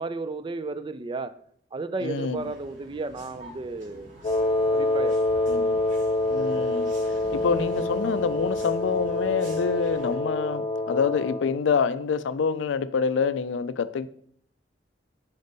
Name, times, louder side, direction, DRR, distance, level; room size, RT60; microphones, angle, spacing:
voice 1, 0.0-1.3 1.7-4.3 4.7-5.4, right 3 dB, 25° right, 0.3 m, -33 dB
voice 2, 2.0-2.4 5.5-5.8 6.3-6.9 7.3-14.1, left 5 dB, 80° left, 0.4 m, -26 dB
sound 1, 2.3-10.1, left 1 dB, 80° right, 2.2 m, -45 dB
Wind instrument woodwind instrument, 4.2-11.5, left 2 dB, 30° left, 0.8 m, -26 dB
5.2 x 5.1 x 4.0 m
head